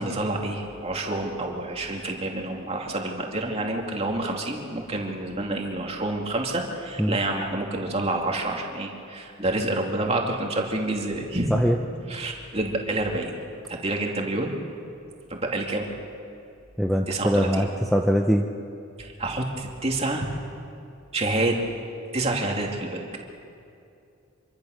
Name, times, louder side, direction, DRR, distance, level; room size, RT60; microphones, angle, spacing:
voice 1, 0.0-11.5 12.1-13.3 13.7-14.5 15.3-15.8 17.1-17.7 19.0-20.3 21.1-21.6 22.1-23.0, right 2 dB, 30° right, 0 dB, 2.7 m, -28 dB
voice 2, 16.8-18.4, equal, ahead, 2 dB, 0.8 m, -22 dB
26.0 x 24.0 x 6.6 m, 2.6 s
head